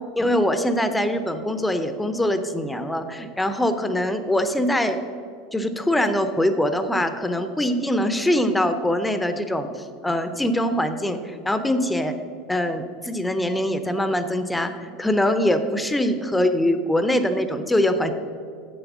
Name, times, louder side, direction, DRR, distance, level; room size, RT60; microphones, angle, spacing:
voice 1, 0.2-5.0 5.5-12.1 12.5-18.1, left 1 dB, 5° left, 9 dB, 0.5 m, -23 dB
7.8 x 7.6 x 6.0 m, 2.3 s
supercardioid pair, 150°, 0 cm